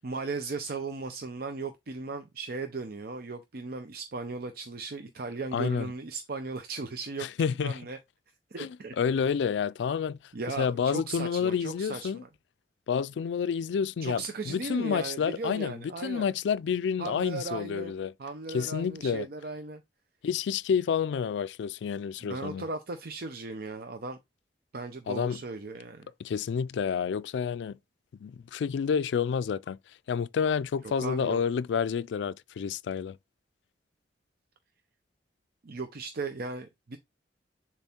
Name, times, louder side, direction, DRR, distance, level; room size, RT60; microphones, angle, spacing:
voice 1, 0.0-7.3 7.6-8.0 8.5-8.9 10.3-12.3 14.0-16.2 17.0-19.8 22.2-24.2 24.7-26.1 31.0-31.4 35.6-37.0, right 3 dB, 60° right, 0.7 m, -37 dB
voice 2, 5.5-5.9 7.2-7.8 8.6-10.2 10.6-12.2 12.9-18.1 18.5-19.3 20.2-22.6 25.1-25.4 26.2-27.8 28.2-29.8 30.1-33.2, left 6 dB, 80° left, 0.3 m, -29 dB
7.0 x 3.1 x 4.3 m
head